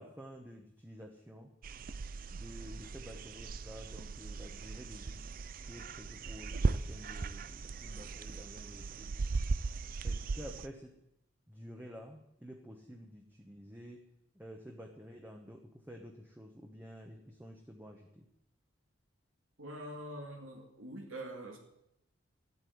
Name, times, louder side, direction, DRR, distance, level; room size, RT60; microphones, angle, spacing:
voice 1, 0.0-1.5 2.3-5.2 5.7-9.2 10.0-10.9 11.5-14.0 14.3-18.3, equal, 10° right, 1 dB, 1.1 m, -50 dB
sound 1, 1.6-10.7, right 4 dB, 45° right, 0.5 m, -38 dB
voice 2, 19.6-21.6, right 1 dB, 85° right, 0 dB, 2.4 m, -44 dB
13.5 x 8.1 x 9.4 m, 0.81 s
head